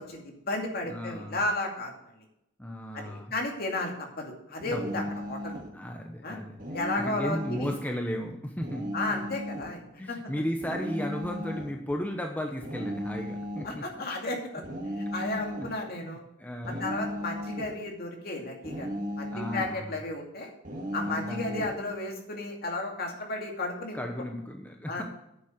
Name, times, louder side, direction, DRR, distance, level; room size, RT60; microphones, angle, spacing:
voice 1, 0.0-1.9 2.9-5.6 6.2-6.4 6.7-7.7 8.9-10.2 13.6-14.6 15.0-16.2 16.7-20.5 20.9-24.0 24.9-25.0, left 2 dB, 50° left, 1 dB, 2.4 m, -33 dB
voice 2, 0.9-1.4 2.6-3.3 4.7-5.1 5.7-6.6 7.0-9.2 10.0-13.8 15.2-15.7 16.0-17.0 19.3-19.9 21.0-21.6 23.9-25.0, equal, 10° left, 2 dB, 0.9 m, -35 dB
sound 1, 4.6-5.7 6.6-7.7 8.6-9.7 10.6-11.7 12.6-13.8 14.6-15.8 16.6-17.8 18.6-19.8 20.6-21.8, equal, 40° right, 1.9 m, -36 dB
9.5 x 7.2 x 6.6 m, 0.82 s
head